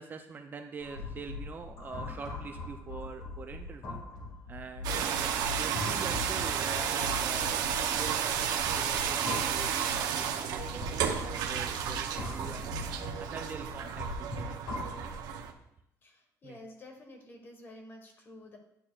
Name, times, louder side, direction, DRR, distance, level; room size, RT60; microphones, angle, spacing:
voice 1, 0.0-4.0 4.5-7.7 8.0-11.0 11.5-14.6 15.0-15.1 16.4-16.6, right 5 dB, 25° right, 5 dB, 0.5 m, -44 dB
sound 1, 0.8-15.5, left 3 dB, 55° left, 2.1 m, -41 dB
sound 2, 4.8-15.5, right 8 dB, 70° right, 0.8 m, -32 dB
Explosion, 10.7-14.8, right 4 dB, 90° right, 1.3 m, -47 dB
voice 2, 16.0-18.6, left 1 dB, 30° left, 3 dB, 1.4 m, -50 dB
10.5 x 6.7 x 2.4 m, 0.81 s
cardioid pair, 160°, 7 cm